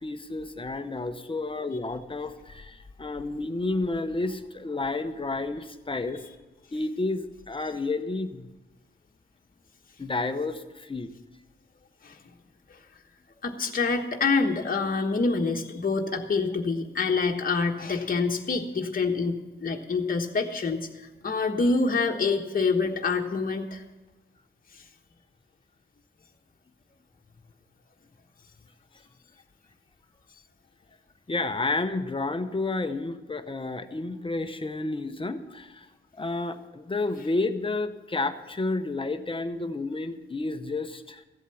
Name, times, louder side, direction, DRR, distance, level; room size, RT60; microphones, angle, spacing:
voice 1, 0.0-6.2 6.7-8.5 10.0-11.1 31.3-35.9 36.2-41.2, left 2 dB, 25° left, 9 dB, 0.9 m, -31 dB
voice 2, 13.4-23.8, left 4 dB, 45° left, 1 dB, 1.3 m, -26 dB
14.5 x 8.2 x 7.0 m, 1.2 s
wide cardioid pair, 115°, 21 cm